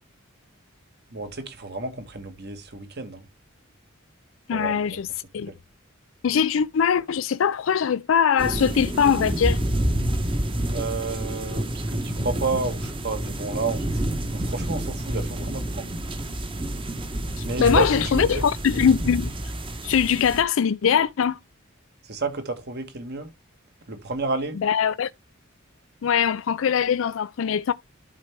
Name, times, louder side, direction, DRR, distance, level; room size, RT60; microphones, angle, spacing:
voice 1, 1.1-3.2 4.5-4.8 10.7-16.0 17.4-17.9 18.1-18.3 22.0-23.3 23.9-24.6, right 3 dB, 50° right, 1.4 m, -31 dB
voice 2, 4.5-5.5 6.2-9.6 17.4-19.3 19.8-21.4 24.5-25.1 26.0-27.7, left 7 dB, 65° left, 0.4 m, -22 dB
sound 1, 8.4-20.4, right 1 dB, 25° right, 1.0 m, -28 dB
11.5 x 4.4 x 3.4 m
head